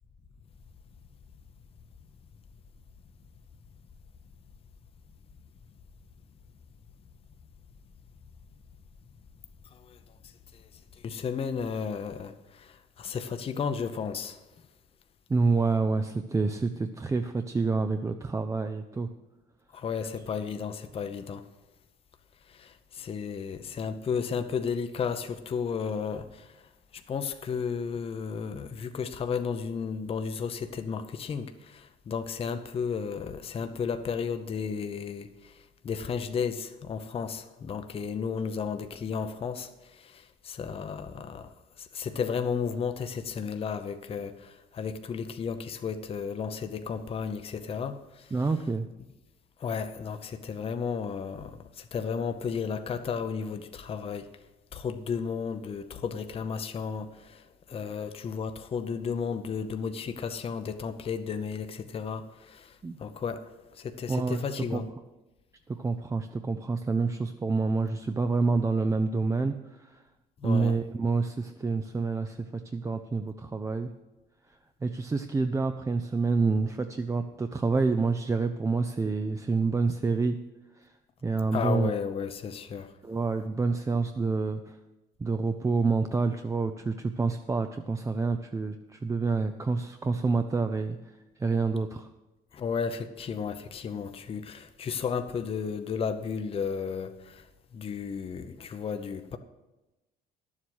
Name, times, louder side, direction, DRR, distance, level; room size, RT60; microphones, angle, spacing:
voice 1, 9.7-14.4 19.7-21.5 22.5-48.4 49.6-54.4 54.7-64.9 70.4-70.8 81.5-82.9 92.5-99.4, left 6 dB, 35° left, 0.7 m, -34 dB
voice 2, 15.3-19.1 48.3-48.9 62.8-63.0 64.1-64.4 64.7-64.8 65.7-70.0 70.4-72.5 72.7-73.9 74.8-80.4 80.8-80.9 81.2-81.9 83.0-84.8 85.2-91.0 91.4-92.1, right 4 dB, 20° right, 0.5 m, -28 dB
11.0 x 7.3 x 6.2 m
cardioid pair, 110°, 17 cm